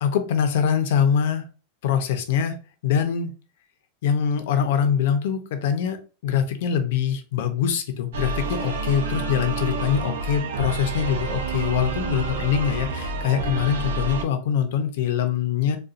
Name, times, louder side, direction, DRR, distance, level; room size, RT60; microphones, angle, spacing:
voice 1, 0.0-1.4 1.8-2.6 2.8-3.3 4.0-6.0 6.2-15.8, left 8 dB, 65° left, 8 dB, 0.7 m, -23 dB
sound 1, 8.1-14.2, right 3 dB, 85° right, 0.7 m, -29 dB
4.0 x 2.3 x 2.5 m, 0.34 s
supercardioid pair, 160°, 0 cm